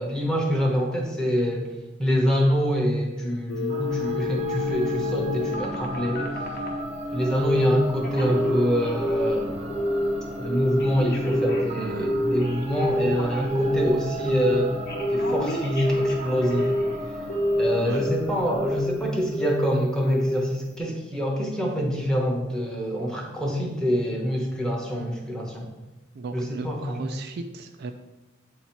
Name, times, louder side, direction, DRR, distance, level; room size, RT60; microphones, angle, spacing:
voice 1, 0.0-1.7 2.0-6.4 7.1-9.7 10.4-14.8 15.1-16.7 17.6-25.7 26.3-27.0, equal, 5° left, -1 dB, 0.9 m, -25 dB
Telephone, 3.5-6.8 7.4-7.8 8.0-9.4 9.7-10.1 10.4-13.8 14.2-14.6 14.9-16.9 17.3-18.2 18.5-18.9 19.3-19.7 20.0-20.4 20.8-20.9, left 1 dB, 50° left, 0.9 m, -27 dB
sound 1, 3.7-19.9, right 1 dB, 30° right, 0.7 m, -35 dB
voice 2, 11.8-12.2 17.7-18.0 26.1-27.9, right 3 dB, 50° right, 6 dB, 0.3 m, -36 dB
7.8 x 2.8 x 4.4 m, 1.1 s
head